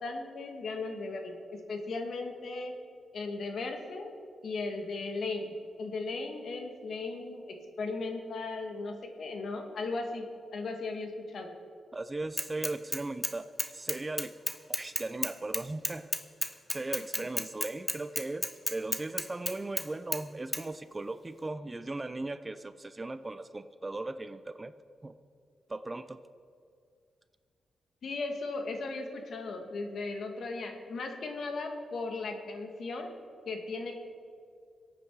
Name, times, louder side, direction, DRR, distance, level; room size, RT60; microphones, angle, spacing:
voice 1, 0.0-2.7 3.1-4.1 4.4-5.5 5.8-10.3 10.5-11.5 28.0-33.1 33.5-33.9, left 3 dB, 65° left, 4 dB, 1.8 m, -37 dB
voice 2, 11.9-13.5 13.7-14.3 14.7-16.1 16.7-24.7 25.0-25.1 25.7-26.2, right 2 dB, 20° right, 12 dB, 0.5 m, -37 dB
Bicycle / Mechanisms, 12.4-13.3 13.6-19.9 20.1-20.2 20.5-20.6, left 1 dB, 15° left, 0.8 m, -32 dB
23.0 x 8.8 x 4.7 m, 2.3 s
cardioid pair, 105°, 0 cm